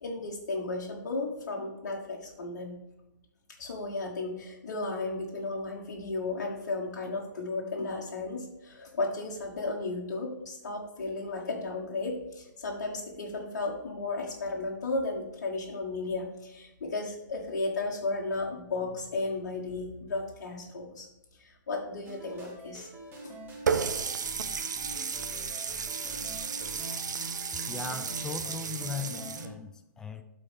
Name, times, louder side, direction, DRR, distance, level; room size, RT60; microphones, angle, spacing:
voice 1, 0.0-2.8 3.6-21.1 21.4-22.9 23.2-23.4, left 3 dB, 55° left, -1 dB, 1.3 m, -34 dB
sound 1, 22.0-29.5, right 1 dB, 20° right, 1.6 m, -44 dB
Water tap faucet, 23.7-29.5, right 6 dB, 65° right, 0.7 m, -33 dB
voice 2, 27.7-30.2, left 5 dB, 5° left, 7 dB, 0.4 m, -38 dB
12.0 x 4.2 x 3.4 m, 0.96 s
figure-of-eight pair, 130°, 11 cm